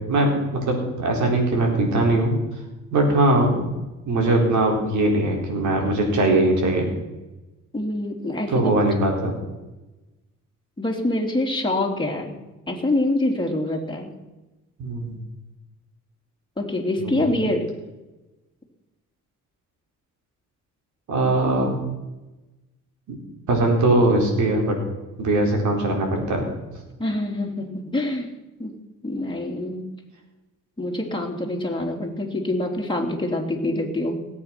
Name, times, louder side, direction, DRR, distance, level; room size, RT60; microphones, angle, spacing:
voice 1, 0.0-2.3 2.9-3.6 4.1-6.9 8.5-9.3 14.8-15.2 17.0-17.2 21.1-21.7 23.1-23.2 23.5-24.7 25.2-26.5, right 2 dB, 75° right, 1 dB, 4.3 m, -21 dB
voice 2, 7.7-8.6 10.8-12.4 12.7-14.1 16.6-17.7 27.0-28.3 28.6-28.8 29.0-30.0 30.8-34.2, left 1 dB, 15° left, 0 dB, 3.1 m, -25 dB
18.0 x 8.6 x 6.0 m, 1.1 s
cardioid pair, 90°, 30 cm